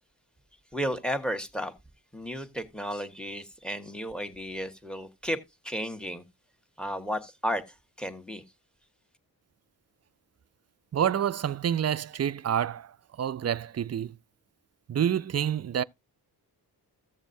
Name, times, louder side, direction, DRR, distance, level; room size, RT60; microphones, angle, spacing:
voice 1, 0.7-1.7 2.1-6.2 6.8-8.4, equal, ahead, 1.5 m, -33 dB
voice 2, 10.9-14.2 14.9-15.8, right 9 dB, 40° right, 0.4 m, -28 dB
15.0 x 7.1 x 2.7 m
cardioid pair, 70°, 41 cm